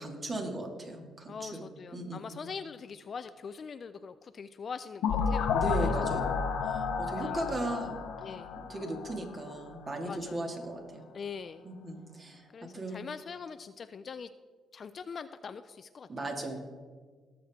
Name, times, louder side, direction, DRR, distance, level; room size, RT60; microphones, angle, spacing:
voice 1, 0.0-2.4 5.5-8.0 8.7-11.1 11.6-12.5 12.7-13.0 16.1-16.6, right 2 dB, 35° right, 2 dB, 2.2 m, -37 dB
voice 2, 1.3-5.9 7.2-7.8 8.2-8.5 10.0-10.4 11.1-11.6 12.5-14.3 14.7-16.1, left 6 dB, 45° left, 11 dB, 0.4 m, -43 dB
sound 1, 5.0-9.7, left 6 dB, 85° left, 1.0 m, -31 dB
18.5 x 7.3 x 3.6 m, 1.5 s
cardioid pair, 90°, 0 cm